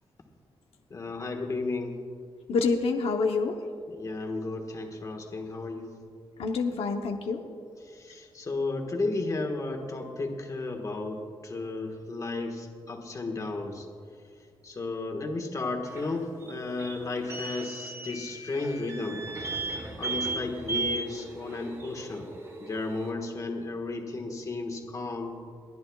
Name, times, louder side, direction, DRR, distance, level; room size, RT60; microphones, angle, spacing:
voice 1, 0.9-2.0 3.9-5.9 7.8-13.9 14.6-19.5 19.9-22.3 22.6-25.4, left 3 dB, 35° left, 2 dB, 1.5 m, -33 dB
voice 2, 2.5-3.6 6.4-7.4, left 4 dB, 85° left, 3 dB, 0.9 m, -27 dB
sound 1, 15.8-23.1, right 3 dB, 25° right, 1.3 m, -36 dB
30.0 x 11.0 x 2.4 m, 2.2 s
wide cardioid pair, 140°, 10 cm